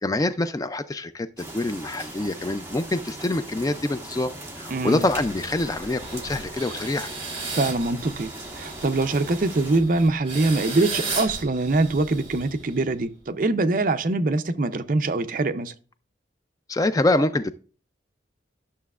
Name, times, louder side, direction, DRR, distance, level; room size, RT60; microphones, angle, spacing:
voice 1, 0.0-4.3 4.6-7.1 16.7-17.5, left 2 dB, 20° left, 0.3 m, -25 dB
sound 1, 1.4-9.8, right 1 dB, 15° right, 1.3 m, -39 dB
voice 2, 4.7-5.0 7.6-8.3 8.6-15.7, right 2 dB, 45° right, 0.5 m, -23 dB
sound 2, 5.0-13.0, right 3 dB, 30° right, 2.2 m, -36 dB
11.5 x 6.6 x 2.4 m
head